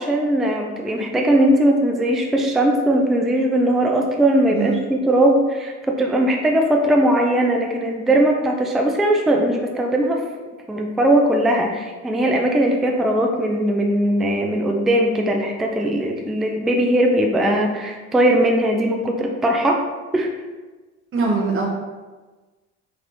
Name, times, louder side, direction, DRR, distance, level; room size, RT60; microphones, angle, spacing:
voice 1, 0.0-10.2 10.7-19.8 20.1-20.3, right 1 dB, ahead, 1 dB, 0.3 m, -19 dB
voice 2, 21.1-21.7, right 4 dB, 35° right, -1 dB, 0.8 m, -21 dB
3.1 x 3.1 x 2.6 m, 1.3 s
hypercardioid pair, 65°, 37 cm